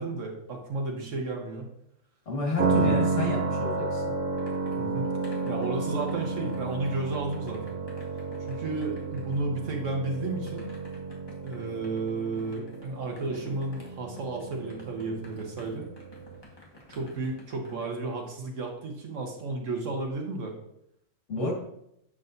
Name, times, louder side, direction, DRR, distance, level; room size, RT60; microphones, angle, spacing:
voice 1, 0.0-1.7 2.6-3.0 4.8-5.1 5.4-7.8 8.4-10.7 11.4-15.9 16.9-20.5 21.3-21.5, right 3 dB, 85° right, 2 dB, 1.5 m, -33 dB
voice 2, 2.3-4.1 21.3-21.5, left 3 dB, 70° left, -1 dB, 1.9 m, -30 dB
sound 1, 2.6-16.4, right 4 dB, 55° right, 0.8 m, -32 dB
sound 2, 3.8-17.8, left 1 dB, 20° left, 1.4 m, -53 dB
7.3 x 6.2 x 2.6 m, 0.77 s
omnidirectional pair, 1.3 m